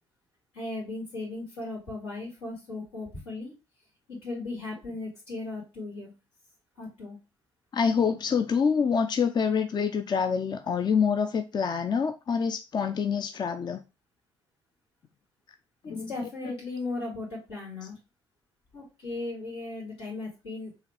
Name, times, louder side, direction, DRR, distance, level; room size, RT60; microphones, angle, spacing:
voice 1, 0.5-3.5 4.1-6.1 6.8-7.2 15.8-18.0 18.7-20.7, left 2 dB, 80° left, 2.6 m, -37 dB
voice 2, 7.7-13.8 15.9-16.1, left 6 dB, 30° left, 0.5 m, -26 dB
4.8 x 2.9 x 3.2 m
hypercardioid pair, 50°, 14 cm